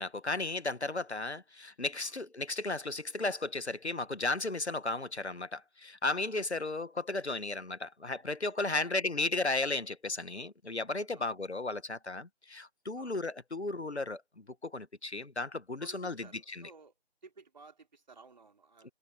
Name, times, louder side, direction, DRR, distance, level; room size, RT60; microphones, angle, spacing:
voice 1, 0.0-16.7, left 2 dB, 85° left, 1.4 m, -35 dB
voice 2, 15.8-16.9 17.2-18.9, right 4 dB, 45° right, 3.4 m, -55 dB
figure-of-eight pair, 160°, 32 cm